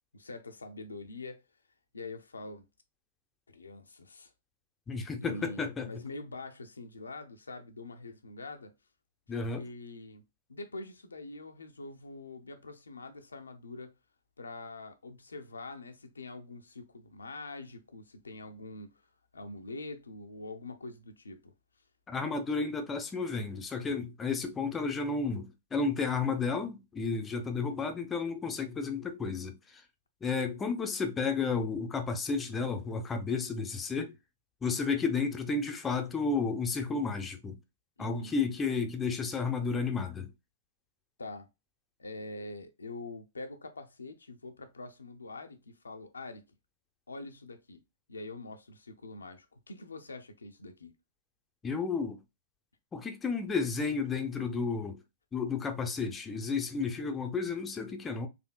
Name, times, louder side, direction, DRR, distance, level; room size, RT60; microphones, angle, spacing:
voice 1, 0.1-1.4 1.9-2.6 3.5-4.3 5.2-8.7 9.5-10.2 10.5-13.9 14.4-18.9 19.3-21.5 27.4-27.7 38.0-38.3 41.2-41.5 42.0-46.4 47.1-47.8 48.1-50.9, left 2 dB, 75° left, 0.6 m, -44 dB
voice 2, 4.9-5.9 9.3-9.6 22.1-29.5 30.2-34.1 34.6-37.6 38.0-40.3 51.6-52.2 52.9-55.0 55.3-58.3, left 4 dB, 15° left, 0.6 m, -32 dB
4.2 x 2.7 x 2.2 m
figure-of-eight pair, 105°, 0 cm